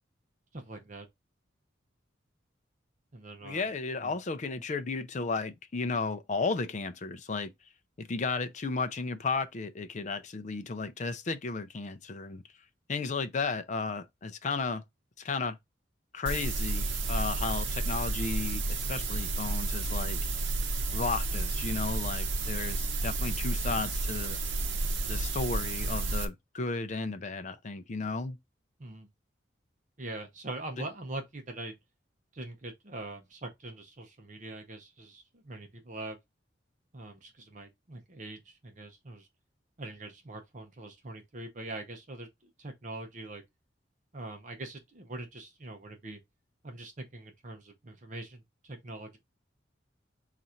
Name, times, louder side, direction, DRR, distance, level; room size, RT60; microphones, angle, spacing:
voice 1, 0.5-1.1 3.1-3.6 4.0-4.1 28.8-29.1 30.0-31.7 32.3-36.2 36.9-39.3 39.8-43.4 44.1-46.2 46.6-49.2, right 2 dB, 40° right, 0.7 m, -43 dB
voice 2, 3.4-7.5 8.0-12.4 12.9-14.8 15.2-15.6 16.1-20.2 20.9-24.4 25.1-28.4 30.8-30.9, left 4 dB, 40° left, 0.5 m, -34 dB
sound 1, 16.3-26.3, right 2 dB, 75° right, 0.8 m, -31 dB
3.9 x 2.5 x 4.3 m
head